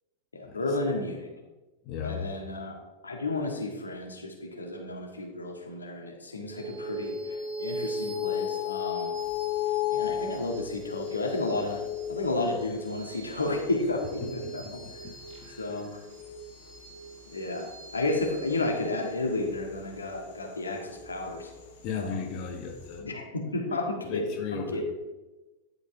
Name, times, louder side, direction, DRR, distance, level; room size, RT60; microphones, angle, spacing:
voice 1, 0.3-1.3 2.0-2.8 3.0-9.1 9.9-11.8 12.1-14.8 15.5-15.9 17.3-21.5 22.0-22.2 23.0-24.2 24.5-24.8, left 2 dB, 75° left, 1 dB, 1.7 m, -32 dB
voice 2, 1.9-2.2 14.4-14.7 15.0-15.1 15.4-15.8 21.8-23.1 23.7-23.8 24.0-24.8, left 6 dB, 40° left, 3 dB, 1.3 m, -35 dB
sound 1, 6.5-21.2, left 6 dB, 35° right, 2.8 m, -36 dB
sound 2, 9.1-23.0, left 5 dB, 60° left, 3.2 m, -56 dB
11.0 x 6.5 x 4.7 m, 1.1 s
figure-of-eight pair, 90°, 0 cm